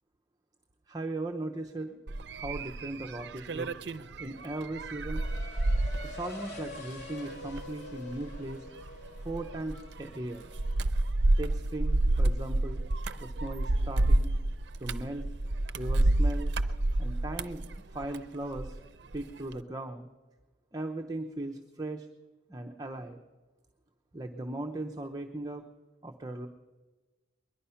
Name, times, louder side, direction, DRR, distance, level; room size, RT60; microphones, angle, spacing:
voice 1, 0.9-2.0 2.3-3.7 4.2-5.2 6.0-8.6 9.2-10.5 11.4-12.8 13.2-14.3 14.8-15.2 15.7-16.5 17.0-18.8 19.1-20.1 20.7-22.1 22.5-23.2 24.1-25.6 26.0-26.5, right 2 dB, 20° right, 3 dB, 0.7 m, -38 dB
sound 1, 2.1-18.8 19.1-19.6, right 1 dB, 70° right, 0.5 m, -30 dB
sound 2, 5.2-10.8, left 3 dB, 60° left, 2.7 m, -46 dB
21.0 x 11.0 x 5.7 m, 1.3 s
head